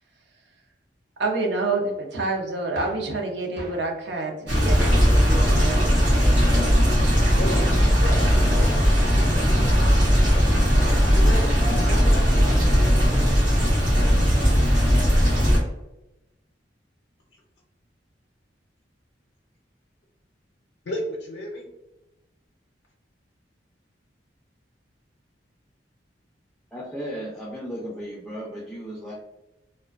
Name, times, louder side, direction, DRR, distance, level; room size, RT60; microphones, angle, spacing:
voice 1, 1.2-6.1, right 3 dB, 65° right, 1 dB, 0.5 m, -28 dB
sound 1, 2.7-3.1 3.6-3.8 4.8-5.2 5.6-5.9 6.8-7.0 7.5-7.8, equal, 45° right, 1.0 m, -37 dB
sound 2, 4.5-15.6, equal, 90° right, 1.0 m, -18 dB
voice 2, 7.4-9.7 10.0-10.8 11.1-12.6 20.9-21.7, equal, 70° left, -1 dB, 0.5 m, -34 dB
voice 3, 26.7-29.1, equal, ahead, -5 dB, 0.3 m, -35 dB
2.5 x 2.1 x 2.3 m, 0.96 s
head